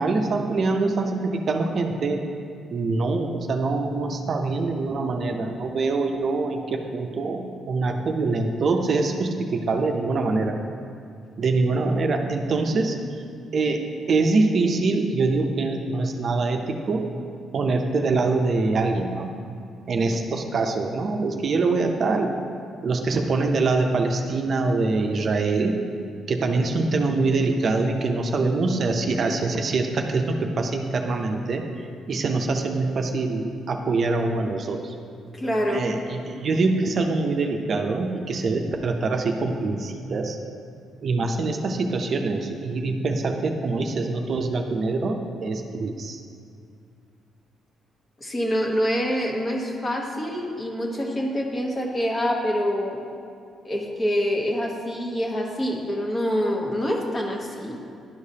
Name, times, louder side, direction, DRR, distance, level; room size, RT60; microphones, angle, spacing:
voice 1, 0.0-2.2 2.7-10.5 11.4-12.9 13.5-17.1 17.5-19.3 19.9-22.3 22.8-25.8 26.3-31.6 32.1-34.9 35.7-40.4 41.0-46.2, right 3 dB, 50° right, 4 dB, 0.5 m, -24 dB
voice 2, 35.3-35.8 48.2-53.0 53.6-57.8, equal, 30° left, 0 dB, 1.1 m, -26 dB
11.0 x 4.8 x 2.8 m, 2.3 s
cardioid pair, 90°, 0 cm